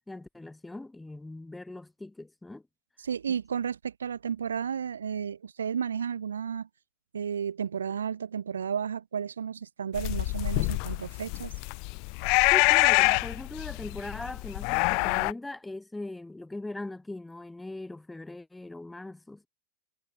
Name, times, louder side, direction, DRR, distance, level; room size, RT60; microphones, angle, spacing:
voice 1, 0.1-2.6 12.4-19.5, left 2 dB, 5° left, 1.1 m, -40 dB
voice 2, 3.0-6.7 7.1-11.5, right 7 dB, 70° right, 1.7 m, -33 dB
sound 1, 9.9-15.3, left 35 dB, 45° left, 0.8 m, -25 dB
figure-of-eight pair, 90°, 0 cm